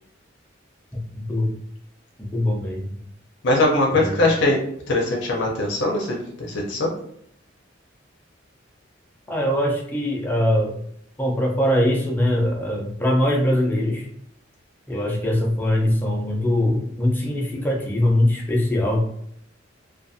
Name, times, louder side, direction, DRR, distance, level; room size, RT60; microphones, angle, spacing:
voice 1, 0.9-1.5 2.2-3.0 3.9-4.2 9.3-10.8 11.2-14.1 14.9-19.0, left 1 dB, 10° left, -2 dB, 0.5 m, -22 dB
voice 2, 3.4-4.6 4.9-6.9, left 2 dB, 65° left, -1 dB, 0.6 m, -21 dB
2.5 x 2.3 x 2.6 m, 0.69 s
head